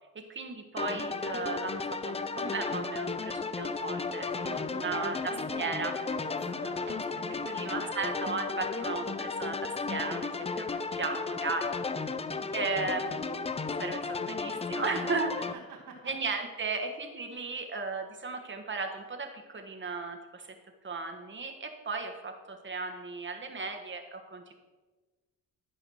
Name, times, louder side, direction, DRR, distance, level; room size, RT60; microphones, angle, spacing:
voice 1, 0.1-5.9 6.9-7.0 7.5-11.7 12.5-13.5 13.8-15.5 16.0-20.5 20.8-24.5, right 4 dB, 35° right, 4 dB, 1.4 m, -36 dB
sound 1, 0.8-15.5, left 4 dB, 20° left, 0.4 m, -34 dB
voice 2, 4.4-7.9 11.9-12.2 15.4-16.1, right 3 dB, 65° right, -4 dB, 2.7 m, -47 dB
12.0 x 4.9 x 6.4 m, 1.3 s
cardioid pair, 100°, 34 cm